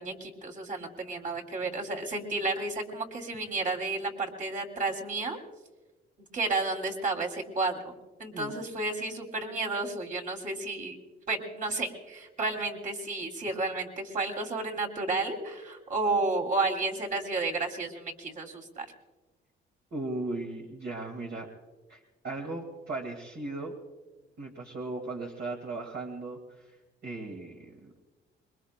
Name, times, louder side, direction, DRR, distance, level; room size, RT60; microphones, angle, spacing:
voice 1, 0.0-5.4 6.3-11.0 11.3-18.9, right 3 dB, 40° right, 1 dB, 2.8 m, -32 dB
voice 2, 19.9-21.5 21.9-23.7 24.4-26.7 27.0-27.9, right 2 dB, 55° right, 0 dB, 2.0 m, -37 dB
25.5 x 22.5 x 2.2 m, 1.2 s
cardioid pair, 90°, 20 cm